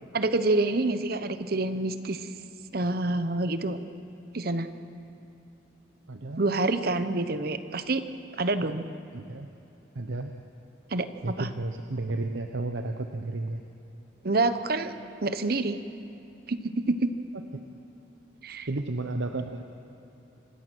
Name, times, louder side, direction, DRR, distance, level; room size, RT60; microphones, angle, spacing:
voice 1, 0.1-2.3 2.7-3.8 4.3-4.7 6.4-8.0 8.4-8.8 10.9-11.1 11.4-11.5 14.2-14.9 15.2-15.8 16.5-16.6 16.9-17.1 18.4-18.7, right 2 dB, 55° right, 10 dB, 0.9 m, -27 dB
voice 2, 6.1-6.4 8.6-8.7 9.1-9.5 10.0-10.3 11.2-13.6 18.7-19.6, right 2 dB, 90° right, 5 dB, 0.9 m, -32 dB
26.5 x 16.0 x 6.3 m, 2.9 s
head